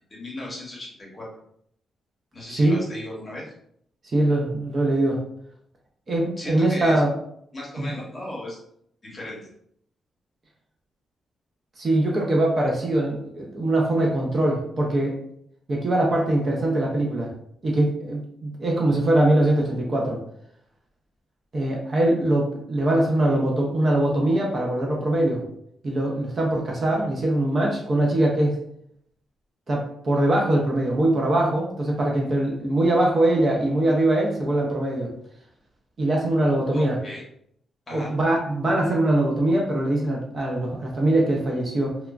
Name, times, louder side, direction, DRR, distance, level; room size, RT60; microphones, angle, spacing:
voice 1, 0.1-1.3 2.3-3.4 6.4-7.0 7.5-8.6 9.0-9.4 36.7-37.2 37.9-38.1, left 1 dB, 25° left, -3 dB, 0.8 m, -36 dB
voice 2, 2.5-2.8 4.1-5.2 6.1-7.1 7.8-7.9 11.8-15.2 15.7-17.3 17.6-20.2 21.5-25.4 25.8-28.6 29.7-35.1 36.0-37.0 37.9-42.0, right 1 dB, 30° right, -1 dB, 0.4 m, -22 dB
2.9 x 2.2 x 2.3 m, 0.69 s
wide cardioid pair, 175°, 0 cm